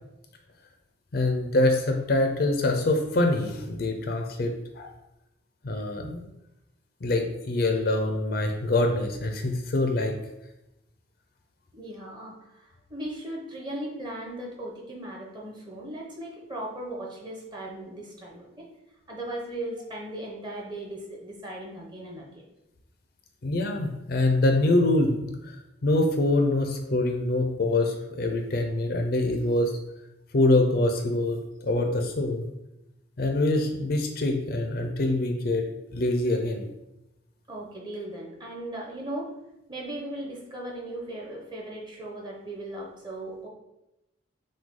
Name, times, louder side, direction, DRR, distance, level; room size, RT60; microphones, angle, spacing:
voice 1, 1.1-4.9 5.6-6.3 7.0-10.1 23.4-25.5 25.8-29.7 30.3-32.5 33.2-35.6 35.9-36.7, left 2 dB, 50° left, 4 dB, 0.5 m, -25 dB
voice 2, 11.7-18.7 19.1-22.4 37.5-39.3 39.7-43.5, right 1 dB, 25° right, -2 dB, 0.9 m, -37 dB
6.0 x 2.3 x 3.7 m, 0.90 s
head